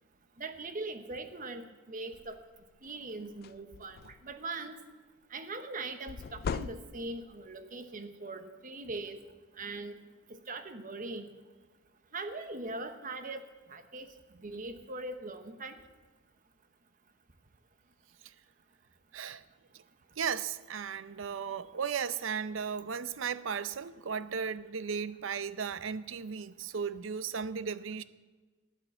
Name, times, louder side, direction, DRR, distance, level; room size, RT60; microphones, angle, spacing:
voice 1, 0.4-2.4 2.8-4.8 5.3-9.2 9.5-9.9 10.3-11.3 12.1-13.4 13.7-14.1 14.4-15.8, right 2 dB, 40° right, 0.9 m, -41 dB
sound 1, 2.1-2.4 2.9-3.0 3.3-4.4 6.1-7.3, left 5 dB, 50° left, 0.3 m, -39 dB
voice 2, 20.2-28.0, right 6 dB, 75° right, 0.6 m, -35 dB
12.5 x 9.2 x 7.5 m
head